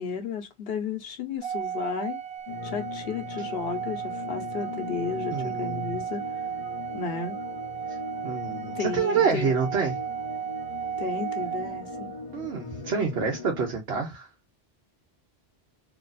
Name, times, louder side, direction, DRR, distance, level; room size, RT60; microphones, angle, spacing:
voice 1, 0.0-2.2 2.6-6.2 6.9-7.4 8.7-9.5 11.0-12.1, left 5 dB, 70° left, 1.0 m, -33 dB
Organ, 1.4-12.3, right 8 dB, 50° right, 0.5 m, -35 dB
sound 1, 2.5-13.7, left 5 dB, 45° left, 0.5 m, -40 dB
voice 2, 5.3-6.0 7.9-8.0 8.2-10.0 12.3-14.3, right 5 dB, 85° right, 1.1 m, -27 dB
3.0 x 2.5 x 4.0 m
omnidirectional pair, 1.1 m